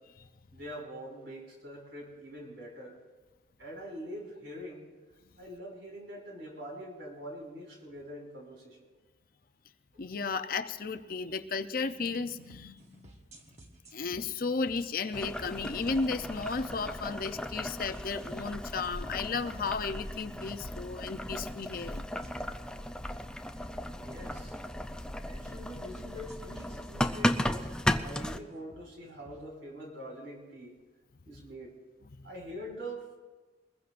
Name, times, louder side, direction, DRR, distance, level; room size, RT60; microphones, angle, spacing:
voice 1, 0.5-3.0 3.6-4.9 5.4-8.9 23.9-24.6 25.2-30.8 31.2-31.7 32.2-33.2, equal, 75° right, -1 dB, 6.0 m, -44 dB
voice 2, 10.0-13.1 13.9-22.0, left 4 dB, 50° left, 10 dB, 0.6 m, -34 dB
sound 1, 12.3-29.4, right 1 dB, 35° right, 1.3 m, -57 dB
Boiling, 15.1-28.4, left 1 dB, 5° left, 0.4 m, -35 dB
23.5 x 21.0 x 2.6 m, 1.3 s
head